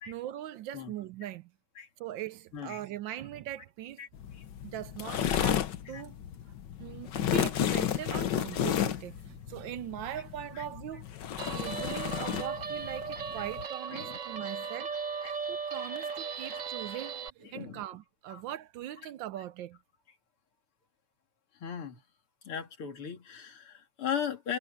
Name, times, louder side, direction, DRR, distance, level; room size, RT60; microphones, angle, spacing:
voice 1, 0.1-1.5 2.0-4.0 4.6-6.1 6.8-11.1 11.5-14.9 15.5-19.8, right 12 dB, 75° right, 1.2 m, -41 dB
voice 2, 4.0-4.5 5.9-6.1 10.5-10.7 13.4-13.5 13.9-14.2 15.2-15.3 16.9-17.0 17.4-17.8 18.3-18.4 21.6-22.0 22.4-24.6, left 8 dB, 85° left, 3.3 m, -38 dB
sound 1, 4.1-13.6, left 10 dB, 60° left, 1.5 m, -32 dB
Guitar, 11.4-17.3, right 5 dB, 45° right, 1.2 m, -37 dB
omnidirectional pair, 2.4 m